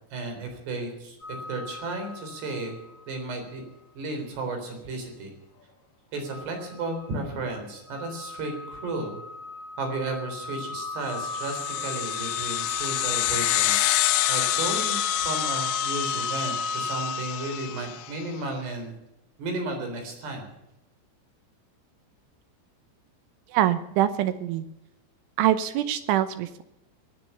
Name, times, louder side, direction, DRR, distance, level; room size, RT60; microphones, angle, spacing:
voice 1, 0.1-2.8 3.1-3.6 4.0-5.3 6.1-9.2 9.8-18.9 19.4-20.5, right 2 dB, 55° right, 4 dB, 5.6 m, -34 dB
sound 1, 1.2-3.1 3.5-3.6 6.3-18.1, left 3 dB, 45° left, 2.7 m, -35 dB
sound 2, 11.2-18.0, left 17 dB, 90° left, 3.5 m, -27 dB
voice 2, 23.5-24.7 25.4-26.6, right 12 dB, 80° right, 12 dB, 3.1 m, -24 dB
19.5 x 10.5 x 7.1 m, 0.86 s
omnidirectional pair, 5.9 m